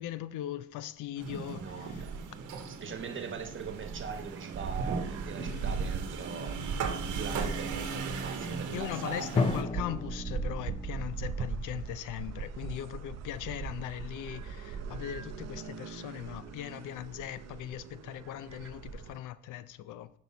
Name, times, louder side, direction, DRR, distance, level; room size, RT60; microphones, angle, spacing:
voice 1, 0.0-2.0 2.6-2.7 5.3-5.9 8.7-20.1, left 12 dB, 80° left, 0.5 m, -40 dB
sound 1, 1.2-19.2, right 6 dB, 60° right, 0.6 m, -40 dB
sound 2, 1.2-9.6, right 4 dB, 90° right, 1.1 m, -38 dB
voice 2, 1.6-6.6 7.0-9.5, right 5 dB, 40° right, 1.1 m, -41 dB
Drum, 9.4-11.3, left 4 dB, 20° left, 0.4 m, -32 dB
6.0 x 5.4 x 4.2 m
cardioid pair, 90°, 30 cm